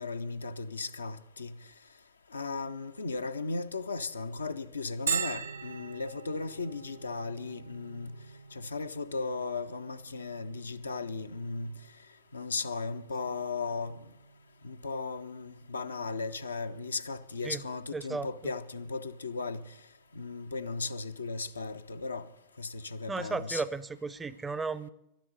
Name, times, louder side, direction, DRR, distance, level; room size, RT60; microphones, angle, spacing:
voice 1, 0.0-1.5 2.3-8.1 8.5-11.7 12.3-14.0 14.6-19.6 20.1-22.3 22.6-23.6, left 3 dB, 75° left, 0.5 m, -36 dB
Bell, 5.1-20.5, right 7 dB, 70° right, 0.4 m, -43 dB
sound 1, 5.2-12.1, left 5 dB, 90° right, 1.3 m, -59 dB
voice 2, 17.9-18.3 23.1-24.9, right 4 dB, 15° right, 0.5 m, -34 dB
12.0 x 10.5 x 7.8 m
figure-of-eight pair, 90°, 0 cm